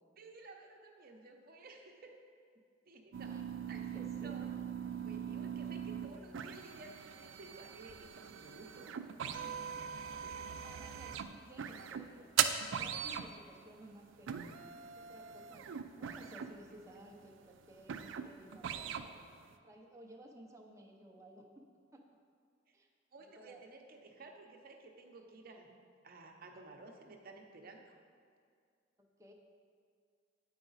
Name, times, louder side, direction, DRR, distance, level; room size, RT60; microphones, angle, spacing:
voice 1, 0.2-2.2 2.9-4.6 5.0-8.9 9.3-9.6 10.2-10.6 22.7-22.8 23.1-25.7 26.0-27.9, right 3 dB, 50° right, 2 dB, 0.8 m, -54 dB
sound 1, 3.1-19.5, right 8 dB, 75° right, 0.4 m, -40 dB
voice 2, 3.3-4.4 10.5-12.4 12.7-14.4 15.0-15.7 15.9-21.5 21.9-22.0 22.7-22.9 23.2-23.6 29.0-29.3, right 1 dB, 15° right, 0 dB, 0.6 m, -56 dB
8.8 x 4.8 x 4.0 m, 2.1 s
head